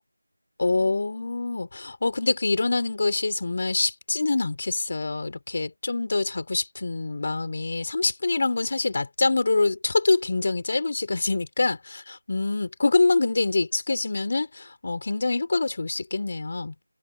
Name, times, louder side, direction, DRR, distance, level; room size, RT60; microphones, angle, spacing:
voice 1, 0.6-16.7, left 3 dB, 35° left, 4.1 m, -25 dB
figure-of-eight pair, 175°, 0 cm